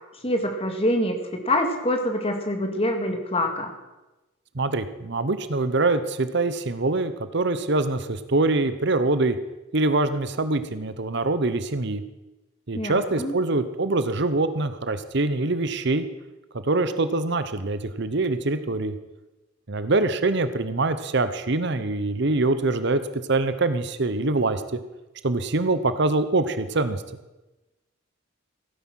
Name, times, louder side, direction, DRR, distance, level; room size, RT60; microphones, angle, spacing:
voice 1, 0.2-3.7 12.7-13.3, left 1 dB, 30° left, 4 dB, 2.1 m, -25 dB
voice 2, 4.5-9.4 9.7-12.0 12.7-16.0 16.6-18.9 19.7-23.0 23.3-24.6 25.2-27.0, right 2 dB, 60° right, 11 dB, 0.9 m, -24 dB
16.5 x 9.8 x 6.4 m, 1.0 s
head